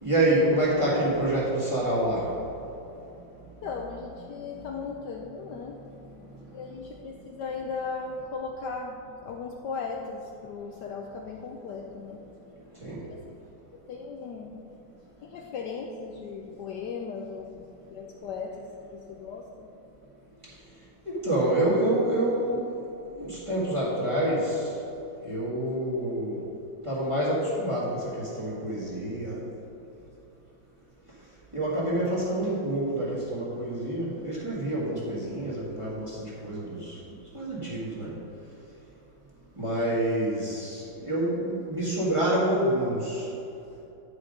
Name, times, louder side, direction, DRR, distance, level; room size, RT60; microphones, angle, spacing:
voice 1, 0.0-2.3 12.8-13.0 21.0-22.6 23.1-24.7 25.2-26.4 26.8-29.4 31.5-36.2 36.4-36.9 37.3-38.1 39.6-43.3, right 1 dB, 15° right, -8 dB, 1.7 m, -27 dB
voice 2, 3.6-5.8 6.5-12.2 12.8-13.2 13.9-14.6 15.2-19.7 39.6-40.0, left 4 dB, 70° left, 1 dB, 1.1 m, -37 dB
10.0 x 5.1 x 5.1 m, 2.9 s
omnidirectional pair, 2.2 m